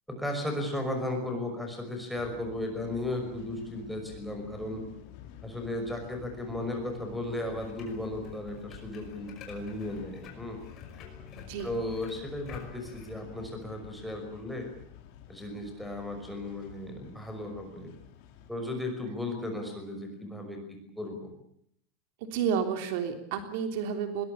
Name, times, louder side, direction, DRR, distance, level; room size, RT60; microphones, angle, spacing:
voice 1, 0.1-4.8 5.4-10.6 11.6-14.7 15.3-17.9 18.5-21.3, left 1 dB, ahead, 2 dB, 5.7 m, -35 dB
sound 1, 2.1-18.5, left 9 dB, 50° left, 4.1 m, -50 dB
sound 2, 7.5-13.1, left 7 dB, 30° left, 5.7 m, -50 dB
voice 2, 11.3-11.7 22.3-24.2, right 7 dB, 60° right, 6 dB, 3.3 m, -31 dB
22.0 x 21.5 x 8.7 m, 0.70 s
supercardioid pair, 165°, 0 cm